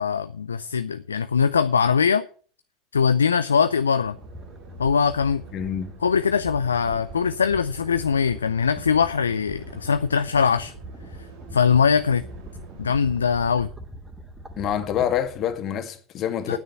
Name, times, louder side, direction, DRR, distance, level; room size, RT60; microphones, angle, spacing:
voice 1, 0.0-2.3 2.9-4.2 4.8-5.4 6.0-10.7 11.5-12.2 12.8-13.7 16.5-16.6, left 6 dB, 85° left, 0.5 m, -21 dB
sound 1, 3.3-13.2, right 4 dB, 65° right, 2.7 m, -47 dB
sound 2, 4.1-15.6, right 1 dB, 10° right, 2.5 m, -42 dB
voice 2, 5.5-5.9 14.6-16.6, left 9 dB, 45° left, 1.9 m, -26 dB
9.4 x 8.6 x 7.8 m
figure-of-eight pair, 75°, 0 cm